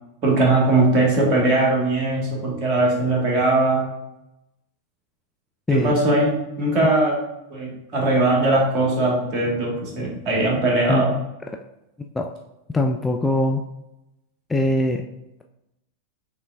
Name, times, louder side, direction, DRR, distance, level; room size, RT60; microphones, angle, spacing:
voice 1, 0.2-3.9 5.7-7.2 7.5-11.1, right 2 dB, 35° right, -2 dB, 1.6 m, -20 dB
voice 2, 12.7-13.6 14.5-15.0, left 1 dB, 10° left, 2 dB, 0.3 m, -21 dB
6.5 x 3.2 x 2.4 m, 0.91 s
figure-of-eight pair, 90°, 0 cm